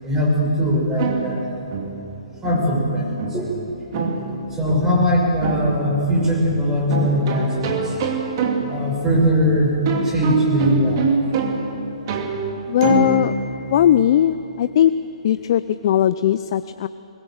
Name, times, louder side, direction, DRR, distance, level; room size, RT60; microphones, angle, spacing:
voice 1, 0.0-1.9 2.4-3.6 4.5-8.0 8.7-9.8 10.0-11.1, equal, 15° right, -2 dB, 5.8 m, -21 dB
sound 1, 1.0-14.6, right 4 dB, 40° right, 2.5 m, -26 dB
voice 2, 12.7-13.3 13.7-14.9 15.2-16.9, left 11 dB, 50° left, 13 dB, 0.5 m, -18 dB
22.5 x 21.5 x 6.5 m, 2.9 s
hypercardioid pair, 145°, 3 cm